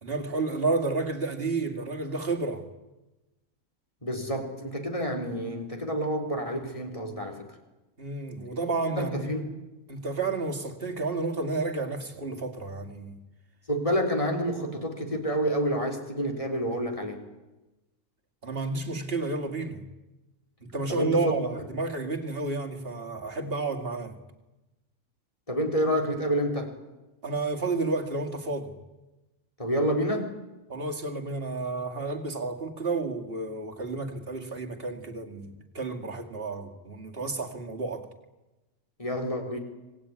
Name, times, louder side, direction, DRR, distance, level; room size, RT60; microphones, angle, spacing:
voice 1, 0.0-2.6 8.0-9.3 9.9-13.2 18.4-19.8 20.6-24.2 27.2-28.7 30.7-38.1, right 3 dB, 40° right, 2.5 m, -31 dB
voice 2, 4.0-7.5 9.0-9.4 13.7-17.2 20.9-21.4 25.5-26.7 29.6-30.4 39.0-39.6, equal, 20° left, 3.8 m, -28 dB
25.5 x 19.5 x 9.6 m
omnidirectional pair, 1.6 m